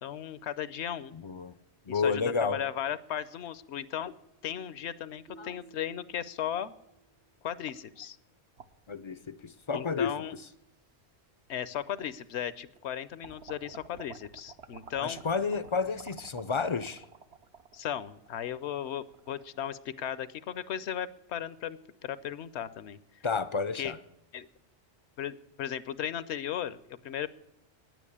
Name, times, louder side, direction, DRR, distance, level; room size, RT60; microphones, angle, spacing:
voice 1, 0.0-1.1 1.9-4.1 4.4-6.7 7.4-8.2 9.7-10.3 11.5-15.2 17.7-23.3 23.7-23.9 24.3-24.5 25.2-27.3, left 10 dB, 75° left, 16 dB, 0.9 m, -36 dB
voice 2, 1.1-1.5 1.9-2.6 5.4-5.5 8.9-10.1 15.0-17.0 23.2-24.0, left 5 dB, 50° left, 14 dB, 0.3 m, -31 dB
sound 1, 5.3-7.4, right 6 dB, 50° right, 0.9 m, -55 dB
sound 2, 8.6-9.7 10.5-10.6 11.8-11.9 12.3-12.9 13.2-19.7, right 5 dB, 70° right, 1.1 m, -50 dB
10.5 x 9.1 x 8.4 m, 0.90 s
omnidirectional pair, 1.1 m